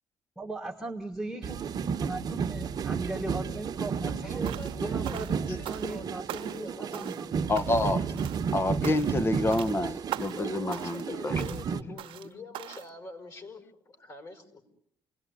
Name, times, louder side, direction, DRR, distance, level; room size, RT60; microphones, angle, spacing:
voice 1, 0.4-7.9, right 2 dB, ahead, 1.5 m, -39 dB
sound 1, 1.4-11.8, right 6 dB, 45° right, 1.2 m, -32 dB
voice 2, 4.1-7.1 10.3-14.6, left 3 dB, 40° left, 5.0 m, -45 dB
sound 2, 4.4-4.8 5.0-6.0 6.3-6.7 6.9-7.3 7.6-7.9 8.2-8.5 8.8-9.2 9.5-9.8 10.1-10.4 10.7-11.1 11.4-11.7 12.0-12.3 12.5-12.9, right 13 dB, 75° right, 1.1 m, -41 dB
voice 3, 7.5-8.0 8.5-11.3, left 2 dB, 25° left, 1.0 m, -28 dB
29.0 x 18.5 x 9.6 m
cardioid pair, 125°, 9 cm